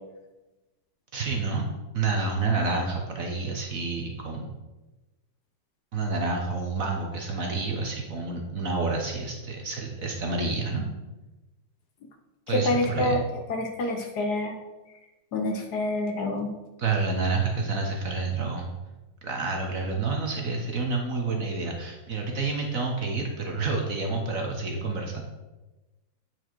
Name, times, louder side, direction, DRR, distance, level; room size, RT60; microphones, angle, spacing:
voice 1, 1.1-1.7 1.9-4.5 5.9-10.8 12.5-13.2 16.8-18.7 19.2-25.2, right 3 dB, 55° right, 1 dB, 1.1 m, -29 dB
voice 2, 12.5-13.2 13.5-14.6 15.3-16.5, left 2 dB, 65° left, 4 dB, 1.2 m, -27 dB
8.8 x 4.6 x 4.5 m, 1.1 s
omnidirectional pair, 2.1 m